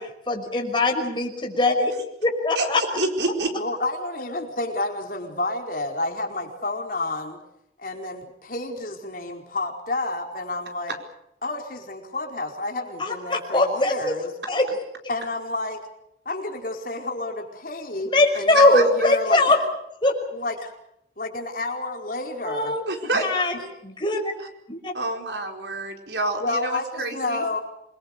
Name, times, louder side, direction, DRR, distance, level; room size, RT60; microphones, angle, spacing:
voice 1, 0.0-1.9 2.2-2.8 13.0-14.1 14.5-14.7 18.1-19.6 20.0-20.1 22.4-22.8 23.2-23.6 23.8-24.3 24.7-24.9, left 2 dB, 25° left, 2 dB, 5.7 m, -21 dB
voice 2, 2.5-3.5 10.9-11.0 18.5-19.1 22.9-23.4 24.9-27.4, right 2 dB, 80° right, 3 dB, 4.6 m, -27 dB
voice 3, 3.5-7.4 7.8-11.0 11.4-14.3 15.1-15.8 16.2-19.6 20.3-20.7 21.2-22.8 23.0-23.1 26.4-27.6, left 2 dB, 50° left, 2 dB, 4.8 m, -30 dB
28.0 x 22.0 x 6.8 m, 0.80 s
head